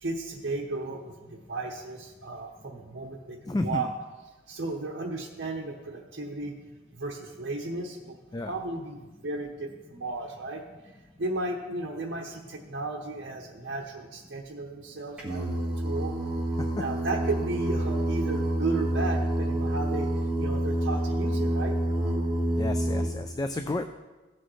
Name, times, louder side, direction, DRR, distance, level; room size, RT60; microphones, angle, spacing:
voice 1, 0.0-3.9 4.5-6.5 6.9-8.2 8.4-10.6 11.2-16.2 16.8-20.1 20.4-21.8, right 2 dB, 60° right, -1 dB, 0.9 m, -34 dB
voice 2, 3.5-3.8 8.3-8.5 22.6-24.0, left 2 dB, 20° left, 7 dB, 0.3 m, -31 dB
Singing, 15.2-23.1, right 1 dB, 5° right, 1.6 m, -28 dB
15.5 x 6.2 x 3.2 m, 1.2 s
head